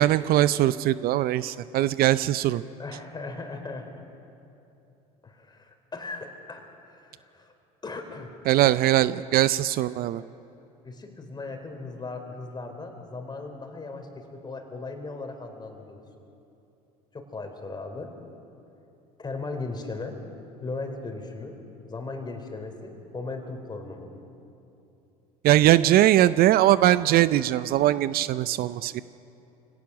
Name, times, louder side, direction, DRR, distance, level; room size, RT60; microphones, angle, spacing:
voice 1, 0.0-2.6 8.5-10.2 25.4-29.0, right 14 dB, 55° right, 16 dB, 0.5 m, -21 dB
voice 2, 2.8-3.9 5.2-7.5 7.8-8.3 10.8-16.0 17.1-18.1 19.2-20.2 20.6-21.5 21.9-24.1, left 3 dB, 25° left, 5 dB, 3.8 m, -37 dB
24.0 x 17.5 x 6.2 m, 2.8 s
hypercardioid pair, 80°, 19 cm